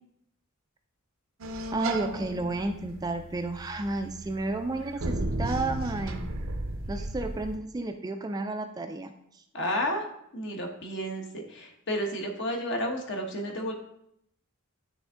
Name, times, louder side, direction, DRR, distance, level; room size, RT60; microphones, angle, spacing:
sound 1, 1.4-7.6, right 1 dB, 75° right, 0.7 m, -35 dB
voice 1, 1.7-6.3 6.9-9.1, right 2 dB, 20° right, 6 dB, 0.3 m, -32 dB
voice 2, 9.5-10.1 10.3-13.7, equal, 60° left, 2 dB, 1.2 m, -31 dB
9.2 x 3.5 x 3.6 m, 0.74 s
head